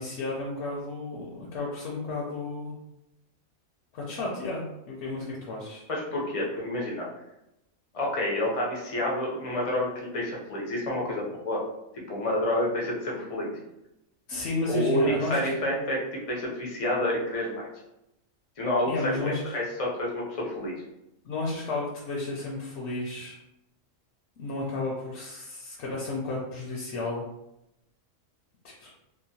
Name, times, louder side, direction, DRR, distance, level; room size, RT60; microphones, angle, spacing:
voice 1, 0.0-2.7 3.9-5.8 14.3-15.5 15.8-15.9 18.9-19.5 21.2-23.4 24.4-27.2 28.8-28.9, left 3 dB, 65° left, -3 dB, 0.8 m, -32 dB
voice 2, 5.9-7.1 7.9-11.6 12.1-13.5 14.7-17.7 18.6-20.8, left 1 dB, 45° left, -3 dB, 0.4 m, -29 dB
2.8 x 2.1 x 2.7 m, 0.88 s
omnidirectional pair, 1.4 m